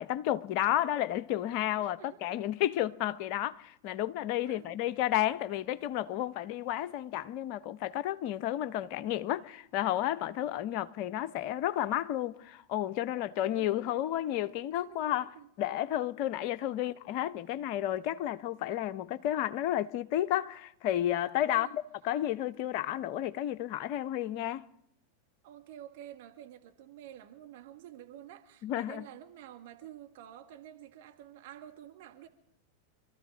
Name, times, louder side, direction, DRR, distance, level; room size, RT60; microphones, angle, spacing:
voice 1, 0.0-21.7 22.0-24.6 28.6-29.0, left 12 dB, 45° left, 0.7 m, -32 dB
voice 2, 1.8-2.3 4.4-4.7 13.2-14.4 14.7-15.5 16.8-17.0 21.5-21.8 25.4-32.3, right 11 dB, 50° right, 1.7 m, -50 dB
26.5 x 13.5 x 3.6 m
figure-of-eight pair, 90°, 0 cm